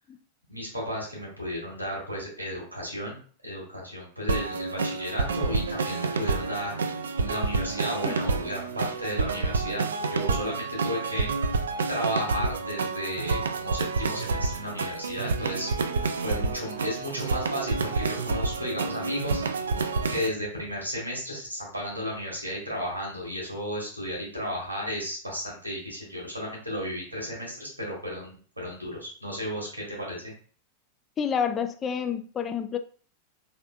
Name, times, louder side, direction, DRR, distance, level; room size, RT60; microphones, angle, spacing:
voice 1, 0.5-6.7 7.2-11.5 11.9-15.7 16.2-19.4 20.1-30.3, equal, 90° right, -3 dB, 1.7 m, -34 dB
sound 1, 4.3-20.3, right 4 dB, 70° right, 0.3 m, -29 dB
voice 2, 31.2-32.8, left 7 dB, 25° left, 9 dB, 0.3 m, -28 dB
3.6 x 3.3 x 2.4 m, 0.43 s
figure-of-eight pair, 90°, 0 cm